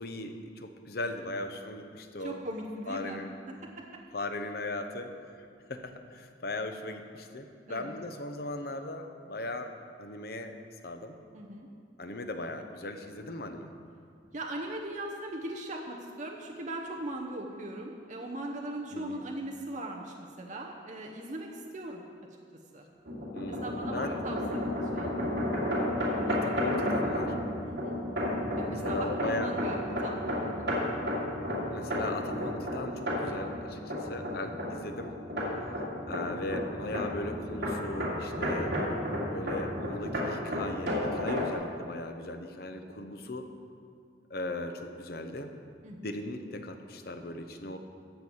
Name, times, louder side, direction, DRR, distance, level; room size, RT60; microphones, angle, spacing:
voice 1, 0.0-2.4 2.9-3.3 4.1-10.6 10.8-11.2 12.0-13.7 18.9-19.2 23.3-24.2 26.3-27.3 28.8-29.5 31.7-35.1 36.1-38.8 39.3-43.5 44.3-45.5 46.0-47.8, left 2 dB, 55° left, 6 dB, 0.8 m, -38 dB
voice 2, 2.2-3.2 7.7-8.0 11.3-11.7 14.3-22.0 22.7-22.8 23.6-25.2 27.6-28.0 28.6-30.1 30.4-30.7 34.6-34.8 45.8-46.1, right 1 dB, 40° right, 0 dB, 0.9 m, -39 dB
sound 1, 23.1-41.5, left 1 dB, 65° right, 2.7 m, -32 dB
14.0 x 4.7 x 8.1 m, 2.4 s
head